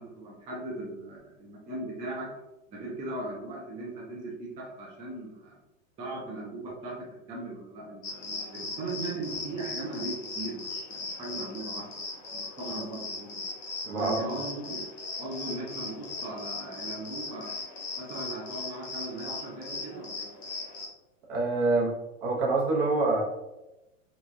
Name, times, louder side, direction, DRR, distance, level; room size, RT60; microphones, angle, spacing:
voice 1, 0.0-2.3 2.7-5.6 6.0-11.9 12.3-13.5 13.9-14.9 15.2-17.5 18.0-20.3, right 2 dB, 15° right, -4 dB, 0.5 m, -38 dB
sound 1, 8.0-20.9, left 3 dB, 35° left, 0.8 m, -38 dB
voice 2, 13.8-14.3 21.3-21.9 22.2-23.2, right 3 dB, 45° right, -1 dB, 0.9 m, -26 dB
2.9 x 2.4 x 2.6 m, 0.95 s
hypercardioid pair, 115°, 41 cm